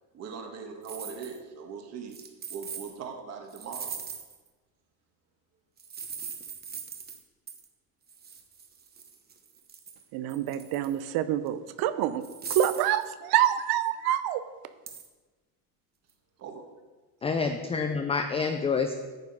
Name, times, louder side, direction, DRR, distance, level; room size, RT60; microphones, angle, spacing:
voice 1, 0.1-2.2 2.5-4.0 16.4-16.6, right 6 dB, 40° right, 3 dB, 1.4 m, -40 dB
sound 1, 0.8-1.4 2.1-2.9 3.5-4.5 5.8-7.2 7.5-7.7 8.1-10.0 10.3-11.0 11.5-11.6 12.2-13.1 14.9-15.1, right 6 dB, 25° right, 1.0 m, -40 dB
voice 2, 10.1-12.2 12.5-14.4, right 11 dB, 65° right, 13 dB, 0.7 m, -26 dB
voice 3, 17.2-18.9, left 5 dB, 15° left, 6 dB, 0.4 m, -27 dB
9.3 x 7.5 x 5.4 m, 1.3 s
cardioid pair, 140°, 41 cm